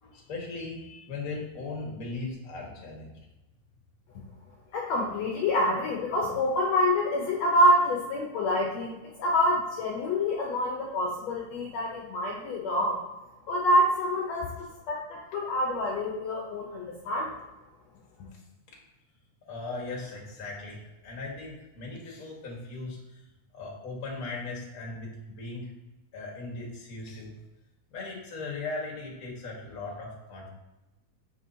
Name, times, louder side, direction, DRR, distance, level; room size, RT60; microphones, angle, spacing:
voice 1, 0.0-3.1 19.5-23.2 23.5-25.7 26.1-27.3 27.9-30.5, left 3 dB, 35° left, -2 dB, 1.7 m, -38 dB
voice 2, 4.7-13.0 13.5-14.5 14.9-17.4, left 1 dB, 70° left, -2 dB, 1.8 m, -26 dB
6.9 x 6.5 x 2.9 m, 1.0 s
omnidirectional pair, 3.7 m